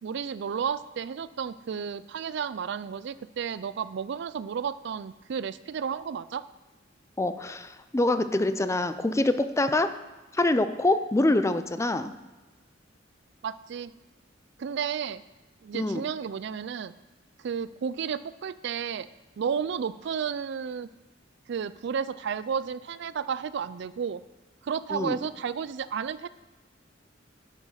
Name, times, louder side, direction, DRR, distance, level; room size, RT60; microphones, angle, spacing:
voice 1, 0.0-6.4 13.4-13.9 14.6-15.2 15.6-16.9 17.4-19.1 19.4-20.9 21.5-24.2 24.6-26.3, right 7 dB, 65° right, 16 dB, 0.4 m, -32 dB
voice 2, 7.2-9.9 10.3-12.1 15.7-16.0 24.9-25.2, left 2 dB, 15° left, 11 dB, 0.4 m, -25 dB
10.5 x 7.2 x 5.6 m, 1.1 s
head